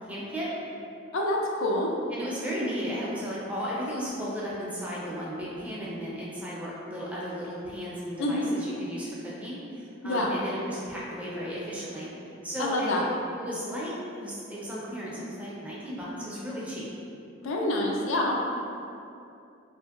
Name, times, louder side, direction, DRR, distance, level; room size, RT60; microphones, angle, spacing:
voice 1, 0.0-0.5 2.1-12.1 12.4-16.9, equal, 5° right, -7 dB, 0.4 m, -35 dB
voice 2, 1.1-1.9 8.2-8.6 10.0-10.4 12.6-13.1 17.4-18.4, left 1 dB, 75° left, -1 dB, 0.4 m, -27 dB
2.9 x 2.6 x 2.3 m, 2.6 s
head